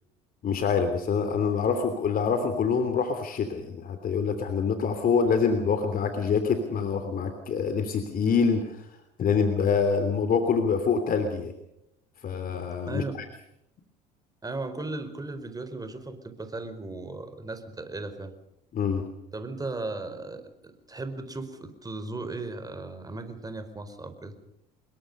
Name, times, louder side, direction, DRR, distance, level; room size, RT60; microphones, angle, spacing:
voice 1, 0.4-8.9 9.2-11.5 12.2-13.2 18.7-19.0, left 5 dB, 45° left, 7 dB, 3.1 m, -25 dB
voice 2, 12.9-13.2 14.4-18.3 19.3-24.4, right 2 dB, 20° right, 9 dB, 4.7 m, -36 dB
26.5 x 21.5 x 5.5 m, 0.83 s
hypercardioid pair, 70°, 21 cm